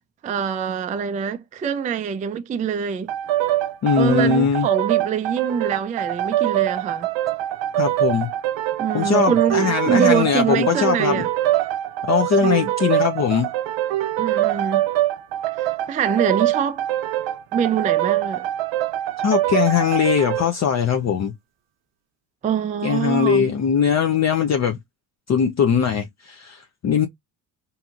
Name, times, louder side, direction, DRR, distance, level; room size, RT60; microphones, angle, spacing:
voice 1, 0.2-3.1 4.0-7.1 8.8-11.3 12.4-12.7 14.2-14.9 15.5-16.9 17.5-18.5 22.4-23.5, right 7 dB, 20° right, 0.3 m, -24 dB
sound 1, 3.1-20.5, right 13 dB, 70° right, 0.5 m, -23 dB
voice 2, 3.8-4.7 7.8-8.3 8.9-11.2 12.0-13.5 19.2-21.3 22.8-24.8 25.3-27.1, left 7 dB, 35° left, 0.5 m, -20 dB
2.8 x 2.7 x 2.4 m
supercardioid pair, 80°, 46 cm